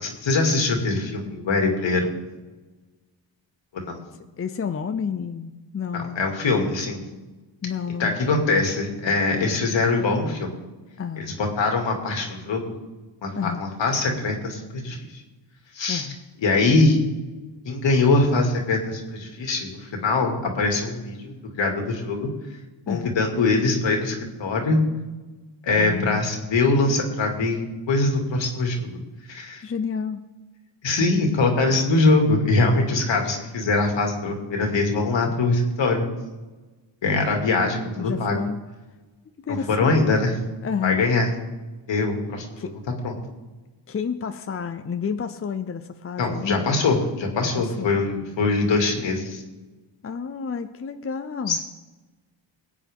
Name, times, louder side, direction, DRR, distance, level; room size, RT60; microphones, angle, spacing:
voice 1, 0.0-2.1 3.7-4.0 5.9-7.0 8.0-10.6 11.2-12.7 13.2-15.0 15.7-16.1 16.4-17.0 17.6-22.3 22.9-24.8 25.6-29.0 29.3-29.6 30.8-36.1 37.0-38.4 39.5-40.4 40.8-41.3 41.9-42.7 43.0-43.1 46.2-49.4 51.5-51.6, left 3 dB, 70° left, 2 dB, 2.5 m, -22 dB
voice 2, 4.4-6.2 7.6-8.2 11.0-11.4 13.4-13.6 15.9-16.2 22.9-23.1 25.8-26.3 29.6-30.2 38.0-38.6 39.5-40.1 40.6-41.0 42.6-42.7 43.9-46.6 47.6-47.9 50.0-51.6, left 6 dB, 30° left, 9 dB, 0.7 m, -30 dB
20.5 x 8.3 x 3.7 m, 1.2 s
cardioid pair, 80°, 46 cm